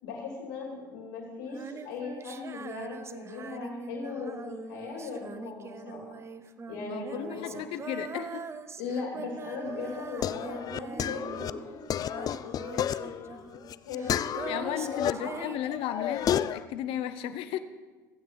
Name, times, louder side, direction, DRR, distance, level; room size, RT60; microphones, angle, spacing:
voice 1, 0.0-6.0 6.7-7.6 8.8-12.7 13.0-15.4, left 4 dB, 80° left, -1 dB, 2.9 m, -39 dB
Female singing, 1.4-11.8 12.0-16.5, right 5 dB, 25° right, 0.7 m, -42 dB
voice 2, 6.8-8.4 12.7-13.2 14.5-17.6, left 11 dB, 60° left, 11 dB, 0.8 m, -35 dB
sound 1, 9.7-15.1 15.5-16.6, left 10 dB, 35° left, 0.4 m, -32 dB
15.5 x 8.7 x 4.0 m, 1.4 s
supercardioid pair, 90°, 11 cm